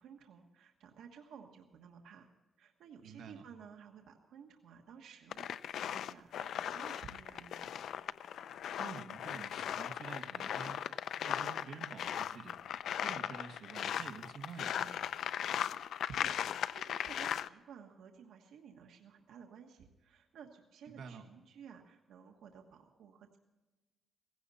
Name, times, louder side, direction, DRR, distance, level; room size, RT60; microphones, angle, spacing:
voice 1, 0.0-2.3 2.6-7.7 16.1-23.4, right 7 dB, 85° right, 3 dB, 1.3 m, -55 dB
voice 2, 3.0-3.4 8.8-10.8 11.2-12.6 13.0-15.0 20.9-21.2, right 6 dB, 70° right, 4 dB, 1.6 m, -49 dB
sound 1, 5.3-17.5, left 9 dB, 70° left, 0.4 m, -38 dB
18.0 x 16.0 x 4.2 m, 1.2 s
cardioid pair, 150°, 0 cm